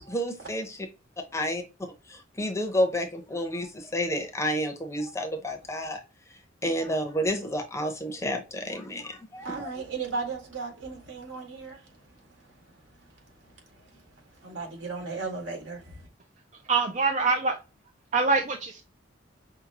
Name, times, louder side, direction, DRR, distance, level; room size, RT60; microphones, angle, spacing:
voice 1, 0.1-0.9 1.3-1.6 2.1-6.0 6.6-9.7, equal, 15° left, 0.7 m, -30 dB
voice 2, 9.5-11.7 14.6-15.8, right 4 dB, 85° right, 1.9 m, -35 dB
voice 3, 16.7-17.5 18.1-18.8, right 4 dB, 35° right, 0.4 m, -24 dB
5.8 x 2.2 x 2.8 m
head